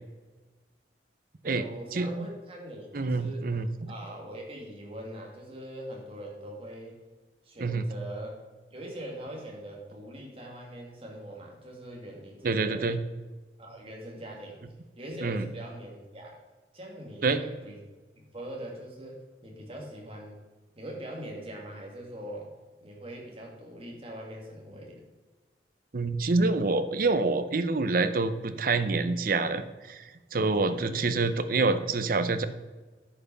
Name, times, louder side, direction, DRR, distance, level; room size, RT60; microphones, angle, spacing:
voice 1, 1.4-3.6 3.9-7.0 7.4-8.4 8.7-13.0 13.6-14.6 15.0-16.4 16.7-17.8 18.2-20.4 20.7-22.5 22.8-25.0 30.6-31.2, right 1 dB, 30° right, -1 dB, 2.2 m, -42 dB
voice 2, 2.9-3.9 7.6-7.8 12.4-13.0 15.2-15.4 17.2-17.4 25.9-32.5, right 3 dB, 50° right, 11 dB, 0.6 m, -27 dB
10.0 x 5.8 x 5.5 m, 1.2 s
head